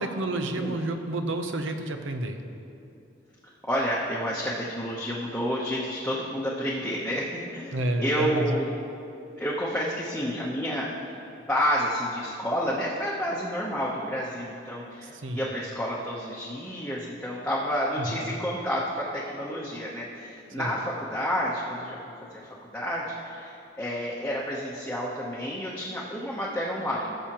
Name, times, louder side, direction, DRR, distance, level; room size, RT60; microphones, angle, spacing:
voice 1, 0.0-2.4 7.7-8.6 15.0-15.5 18.0-18.4 20.6-20.8, right 1 dB, 90° right, 6 dB, 0.8 m, -30 dB
voice 2, 3.7-7.3 7.5-8.7 9.4-11.0 11.5-22.0 22.3-22.4 22.7-27.2, equal, 10° left, -6 dB, 0.8 m, -30 dB
16.0 x 7.0 x 3.0 m, 2.7 s
head